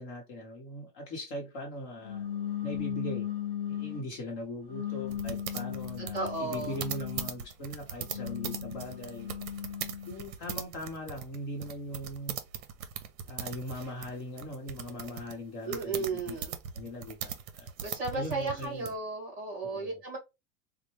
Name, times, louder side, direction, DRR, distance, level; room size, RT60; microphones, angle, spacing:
voice 1, 0.0-2.2 2.6-3.3 3.7-9.3 10.1-12.4 13.3-16.4 16.7-17.7 18.1-18.9 19.6-20.0, left 1 dB, 40° left, 0.9 m, -40 dB
sound 1, 2.0-4.1 4.7-7.4 8.0-10.2, left 10 dB, 15° left, 1.4 m, -37 dB
sound 2, 5.1-18.9, right 8 dB, 55° right, 0.7 m, -40 dB
voice 2, 6.0-6.8 15.6-16.6 17.8-20.2, right 3 dB, 15° right, 1.7 m, -34 dB
4.2 x 2.1 x 3.0 m
supercardioid pair, 170°, 49 cm